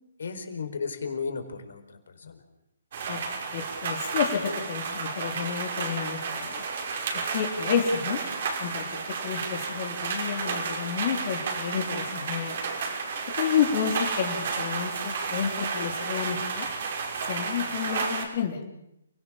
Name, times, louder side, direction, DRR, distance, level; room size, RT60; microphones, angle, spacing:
voice 1, 0.2-2.4, left 5 dB, 70° left, 7 dB, 4.6 m, -34 dB
sound 1, 2.9-18.3, right 5 dB, 55° right, 5.7 m, -32 dB
voice 2, 3.5-6.6 7.1-8.2 8.6-12.7 13.3-16.7 17.2-18.6, left 8 dB, 45° left, 3 dB, 3.8 m, -30 dB
29.5 x 17.5 x 7.4 m, 0.82 s
hypercardioid pair, 140°, 0 cm